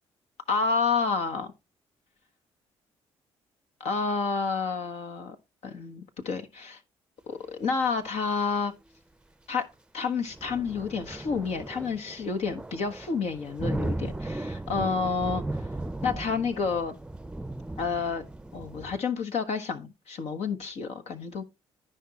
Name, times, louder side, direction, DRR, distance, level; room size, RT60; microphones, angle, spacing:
voice 1, 0.5-1.5 3.8-5.4 5.6-6.8 7.3-8.7 9.5-9.7 9.9-15.6 16.0-17.0 17.8-18.3 18.5-21.4, left 5 dB, 70° left, 1.2 m, -29 dB
sound 1, 10.2-19.0, right 2 dB, 10° right, 0.6 m, -36 dB
14.5 x 5.1 x 2.9 m
supercardioid pair, 65°, 11 cm